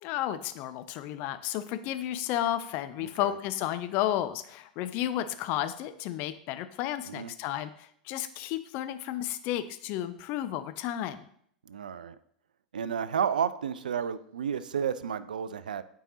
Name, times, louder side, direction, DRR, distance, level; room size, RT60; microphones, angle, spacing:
voice 1, 0.0-11.3, left 12 dB, 40° left, 11 dB, 0.5 m, -32 dB
voice 2, 11.7-12.2 12.7-15.8, right 7 dB, 70° right, 14 dB, 0.3 m, -31 dB
8.7 x 4.7 x 2.7 m, 0.65 s
figure-of-eight pair, 90°, 5 cm